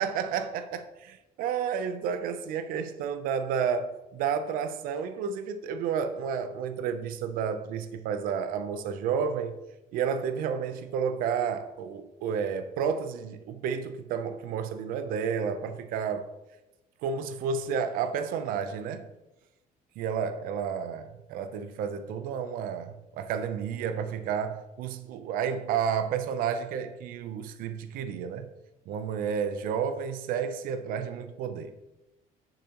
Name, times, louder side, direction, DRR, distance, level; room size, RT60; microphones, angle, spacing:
voice 1, 0.0-9.6 9.9-16.3 17.0-19.1 20.0-28.5 28.9-31.7, right 7 dB, 90° right, 0.6 m, -31 dB
9.9 x 6.5 x 3.0 m
cardioid pair, 130°, 14 cm